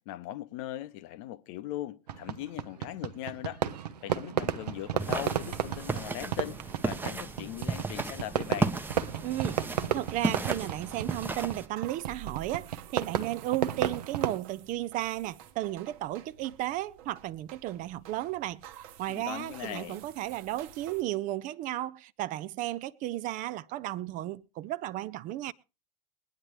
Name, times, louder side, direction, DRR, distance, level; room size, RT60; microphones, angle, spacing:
voice 1, 0.1-3.6 4.0-8.7 19.1-20.0, left 13 dB, 50° left, 0.8 m, -39 dB
Fireworks, 2.1-14.4, right 9 dB, 70° right, 0.8 m, -33 dB
sound 1, 4.6-21.0, right 9 dB, 55° right, 1.2 m, -52 dB
sound 2, 5.0-11.7, right 3 dB, 10° right, 0.8 m, -34 dB
voice 2, 9.2-9.6 9.9-18.6 19.0-25.5, right 15 dB, 40° right, 0.6 m, -34 dB
22.0 x 9.8 x 3.1 m
figure-of-eight pair, 80°, 21 cm